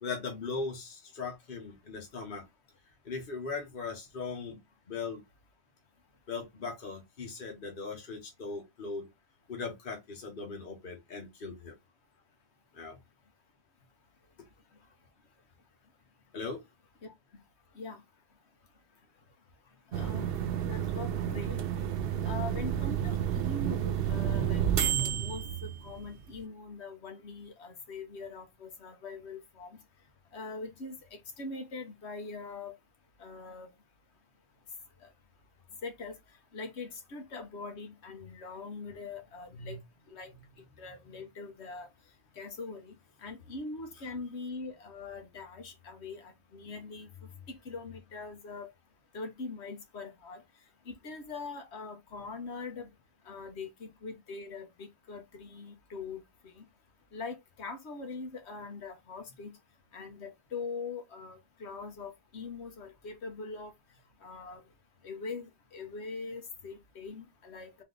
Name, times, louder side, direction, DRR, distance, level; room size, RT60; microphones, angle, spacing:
voice 1, 0.0-2.4 3.0-4.6 4.9-5.2 6.3-9.1 9.5-11.8 12.7-13.0 16.3-16.6 39.5-39.8, left 4 dB, 55° left, 1.2 m, -39 dB
voice 2, 19.9-20.3 20.6-21.6 22.2-29.8 30.3-32.7 33.2-33.7 35.8-36.1 36.5-39.8 40.1-40.3 40.8-41.9 42.4-42.9 43.2-47.1 47.5-48.7 49.1-50.4 50.9-52.9 53.3-56.2 56.6-56.7 57.1-59.5 59.9-63.7 64.2-64.6 65.0-67.8, left 3 dB, 75° left, 1.2 m, -42 dB
sound 1, 19.9-26.4, right 9 dB, 65° right, 0.7 m, -30 dB
3.9 x 2.7 x 3.8 m
omnidirectional pair, 1.1 m